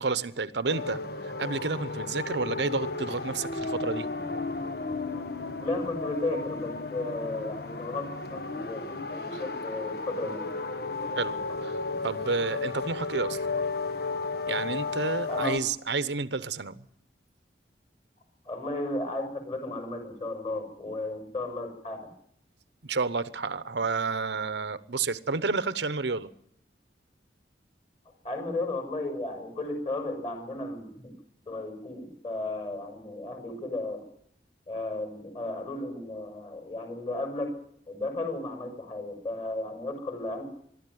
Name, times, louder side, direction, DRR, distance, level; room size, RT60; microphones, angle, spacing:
voice 1, 0.0-4.1 9.3-9.4 11.1-11.8 12.0-13.4 14.5-16.8 22.8-26.3, right 4 dB, 75° right, 0.9 m, -30 dB
sound 1, 0.7-15.6, left 3 dB, 60° left, 1.3 m, -34 dB
voice 2, 5.6-10.6 15.3-15.6 18.5-22.1 28.2-31.1 31.5-34.1 34.7-37.5 37.9-40.4, left 2 dB, 30° left, 5.9 m, -34 dB
23.5 x 12.5 x 9.3 m
head